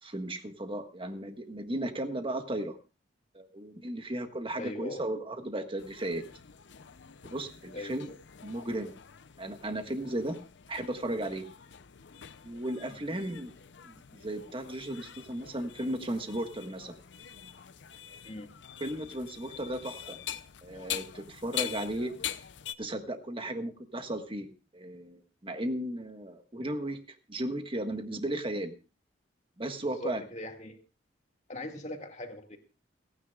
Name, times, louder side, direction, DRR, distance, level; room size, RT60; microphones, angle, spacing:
voice 1, 0.0-2.8 3.3-6.2 7.2-8.1 8.4-8.9 9.4-10.4 10.7-11.5 12.4-13.5 13.8-17.0 18.8-20.2 20.6-22.1 22.8-27.0 27.3-28.7 29.6-30.2, right 1 dB, 30° right, 6 dB, 1.5 m, -35 dB
voice 2, 4.6-5.0 7.7-7.9 18.2-18.5 21.6-21.8 29.8-30.8 31.5-32.6, left 1 dB, 40° left, 4 dB, 2.2 m, -40 dB
sound 1, 5.8-22.7, left 10 dB, 65° left, 0.6 m, -44 dB
29.0 x 9.8 x 2.4 m, 0.31 s
head